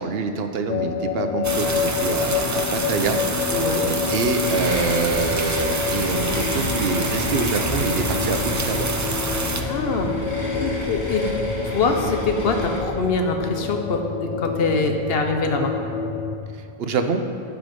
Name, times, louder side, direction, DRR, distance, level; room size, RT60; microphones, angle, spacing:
voice 1, 0.0-3.2 3.5-3.8 4.1-8.9 16.8-17.2, right 4 dB, 70° right, 7 dB, 0.9 m, -25 dB
sound 1, 0.7-16.4, left 6 dB, 50° left, 0.6 m, -28 dB
sound 2, 1.4-9.6, right 2 dB, 25° right, 0.4 m, -27 dB
voice 2, 3.5-3.9 9.7-10.1 10.5-11.3 11.6-15.7, left 3 dB, 70° left, 4 dB, 1.0 m, -24 dB
sound 3, 4.4-12.8, equal, 35° left, 2.4 m, -31 dB
12.0 x 5.0 x 5.3 m, 2.4 s
omnidirectional pair, 1.1 m